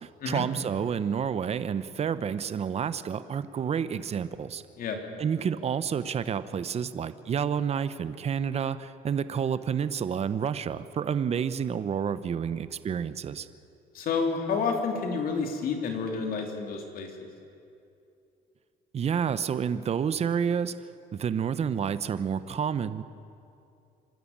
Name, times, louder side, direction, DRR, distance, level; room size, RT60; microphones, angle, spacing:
voice 1, 0.0-4.6 5.2-13.5 18.9-20.8 21.1-23.0, right 7 dB, 40° right, 13 dB, 0.9 m, -29 dB
voice 2, 13.9-17.1, left 5 dB, 60° left, 3 dB, 3.3 m, -29 dB
26.5 x 12.5 x 8.8 m, 2.6 s
cardioid pair, 110°, 17 cm